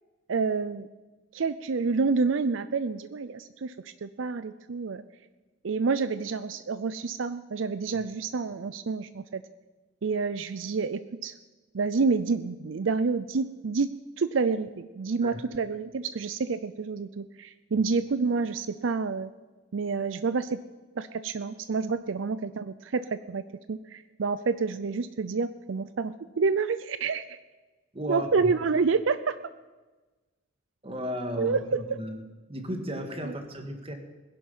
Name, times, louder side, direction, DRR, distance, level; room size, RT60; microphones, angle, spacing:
voice 1, 0.3-0.9 1.3-5.0 5.6-9.4 10.0-11.3 11.7-13.9 14.2-19.3 19.7-20.6 21.0-27.4 28.1-29.4 31.4-32.0 33.2-33.3, right 4 dB, 80° right, 13 dB, 0.5 m, -28 dB
voice 2, 27.9-28.5 30.8-31.6 31.9-32.2 32.5-33.9, equal, 30° right, 6 dB, 1.8 m, -34 dB
20.5 x 11.0 x 5.6 m, 1.2 s
head